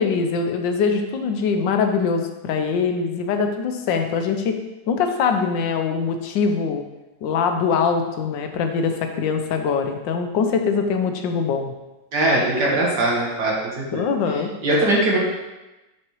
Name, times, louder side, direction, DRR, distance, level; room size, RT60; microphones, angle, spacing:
voice 1, 0.0-4.6 4.9-6.8 7.2-11.7 13.9-14.5, left 5 dB, 90° left, 6 dB, 1.4 m, -22 dB
voice 2, 12.1-14.0 14.6-15.2, right 1 dB, 70° right, -3 dB, 2.0 m, -20 dB
6.3 x 5.8 x 3.0 m, 1.1 s
omnidirectional pair, 1.9 m